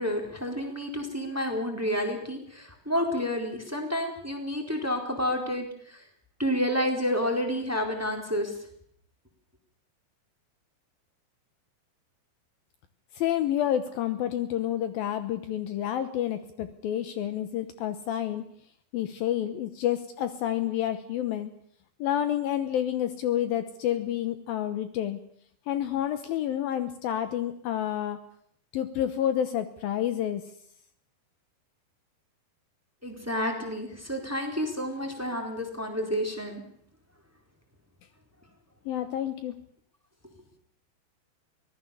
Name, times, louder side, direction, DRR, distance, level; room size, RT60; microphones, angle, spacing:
voice 1, 0.0-6.0 6.4-8.5 33.0-36.6, equal, 5° right, 4 dB, 3.4 m, -30 dB
voice 2, 13.1-18.4 18.9-21.5 22.0-25.2 25.7-28.2 28.7-30.4 38.9-39.5, left 11 dB, 70° left, 10 dB, 2.6 m, -29 dB
24.0 x 18.5 x 7.0 m, 0.65 s
omnidirectional pair, 4.7 m